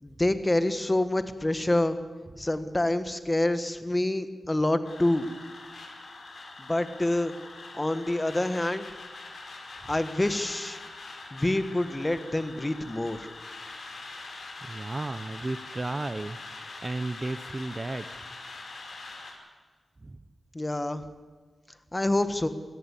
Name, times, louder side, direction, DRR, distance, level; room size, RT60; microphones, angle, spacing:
voice 1, 0.0-2.0 2.4-5.3 6.6-7.3 7.8-8.8 9.9-10.8 11.3-13.3 20.5-21.0 21.9-22.5, left 1 dB, 15° left, 10 dB, 1.4 m, -27 dB
sound 1, 4.8-19.3, left 3 dB, 55° left, 5.6 m, -43 dB
voice 2, 14.6-16.4 16.8-18.1 20.1-20.2, right 2 dB, 25° right, 11 dB, 0.8 m, -33 dB
27.5 x 17.0 x 8.4 m, 1.4 s
wide cardioid pair, 135°, 0 cm